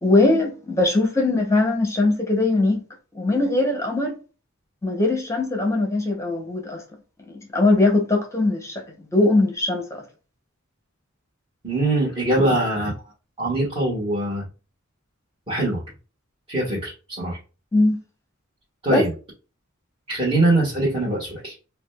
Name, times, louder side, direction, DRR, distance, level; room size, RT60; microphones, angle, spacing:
voice 1, 0.0-2.8 3.1-4.2 4.8-6.8 7.3-10.0 12.4-12.5 17.7-18.0 18.9-19.1, left 2 dB, 15° left, 0.9 m, -21 dB
voice 2, 11.6-12.9 13.4-14.4 15.5-15.8 16.5-17.4 18.8-19.1 20.1-21.5, right 1 dB, 30° right, 1.5 m, -22 dB
4.9 x 2.2 x 2.3 m
head